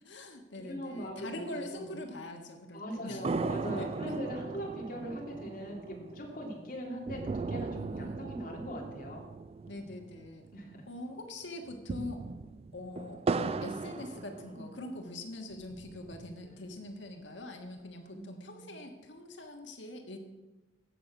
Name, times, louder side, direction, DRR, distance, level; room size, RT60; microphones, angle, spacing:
voice 1, 0.0-3.2 3.6-4.1 7.7-8.2 9.7-10.5 10.9-12.2 12.7-20.2, left 2 dB, 70° left, 4 dB, 1.5 m, -43 dB
voice 2, 0.6-2.1 2.7-9.2 10.5-10.8 14.5-14.8 18.1-18.7, equal, 50° left, -1 dB, 2.8 m, -41 dB
sound 1, 3.2-10.8 11.1-11.2 11.7-15.0 15.5-16.5, right 4 dB, 30° right, 0.3 m, -38 dB
16.0 x 6.8 x 5.9 m, 1.1 s
head